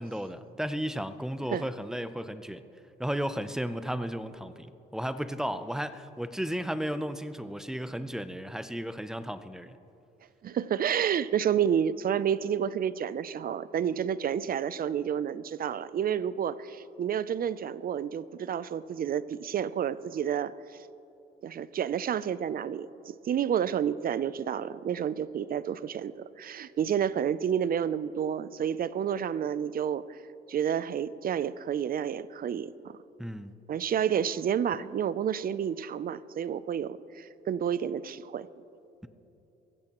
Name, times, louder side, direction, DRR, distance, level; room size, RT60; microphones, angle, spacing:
voice 1, 0.0-2.6 3.0-9.8 33.2-33.5, equal, 5° right, 12 dB, 0.6 m, -34 dB
voice 2, 10.4-20.5 21.4-30.2 30.5-33.0 33.7-38.5, right 8 dB, 50° right, 17 dB, 0.5 m, -30 dB
22.0 x 15.5 x 3.0 m, 2.9 s
cardioid pair, 90°, 20 cm